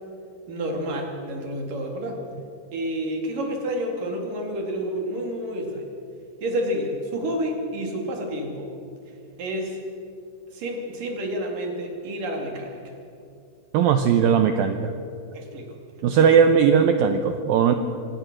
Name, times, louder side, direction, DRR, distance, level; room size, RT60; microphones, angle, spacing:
voice 1, 0.5-2.2 2.7-5.8 6.4-8.7 9.4-9.8 10.5-12.8 15.3-15.7 16.1-16.2, equal, 50° right, 2 dB, 4.0 m, -29 dB
voice 2, 13.7-14.9 16.0-17.7, right 7 dB, 85° right, 7 dB, 2.0 m, -18 dB
26.0 x 18.0 x 6.2 m, 2.6 s
omnidirectional pair, 5.3 m